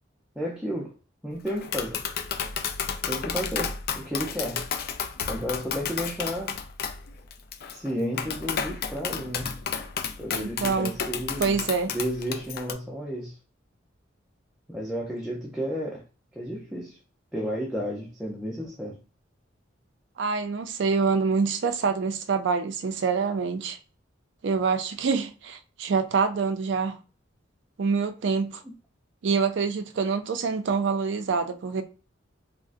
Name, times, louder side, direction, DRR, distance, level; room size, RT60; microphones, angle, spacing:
voice 1, 0.4-0.9 1.2-2.0 3.0-4.7 5.3-6.6 7.7-9.6 10.2-11.6 11.9-13.4 14.7-16.0 16.3-17.0 17.3-19.0 28.6-28.7, equal, ahead, 0.5 m, -32 dB
Tap, 1.5-12.7, left 6 dB, 55° left, 0.4 m, -32 dB
voice 2, 10.3-10.9 11.4-11.9 20.2-23.8 24.4-27.0 27.8-28.6 29.2-31.8, right 5 dB, 65° right, 0.4 m, -26 dB
3.6 x 2.1 x 2.5 m
head